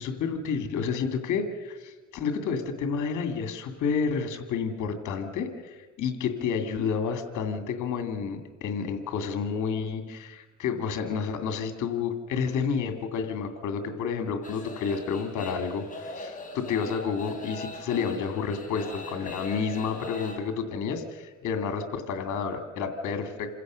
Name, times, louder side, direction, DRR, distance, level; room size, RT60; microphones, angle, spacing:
voice 1, 0.0-23.5, left 6 dB, 80° left, 7 dB, 2.4 m, -30 dB
sound 1, 14.4-20.4, left 2 dB, 25° left, 5.6 m, -41 dB
27.5 x 16.0 x 6.3 m, 1.4 s
cardioid pair, 90°, 30 cm